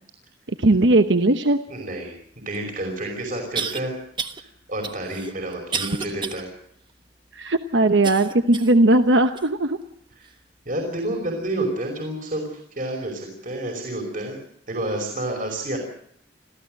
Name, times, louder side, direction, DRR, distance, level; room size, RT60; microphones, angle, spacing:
voice 1, 0.5-1.6 7.3-9.8, right 2 dB, 90° right, 8 dB, 1.1 m, -18 dB
voice 2, 1.7-3.9 4.4-6.5 10.7-14.4 14.7-15.8, right 1 dB, 50° right, 2 dB, 5.3 m, -29 dB
sound 1, 2.5-2.6 3.6-3.8 4.2-4.4 4.8-6.4 6.9-7.0 8.0-8.8 9.4-9.5 10.2-10.3, right 5 dB, 25° right, 1.3 m, -30 dB
26.5 x 15.5 x 7.7 m, 0.68 s
head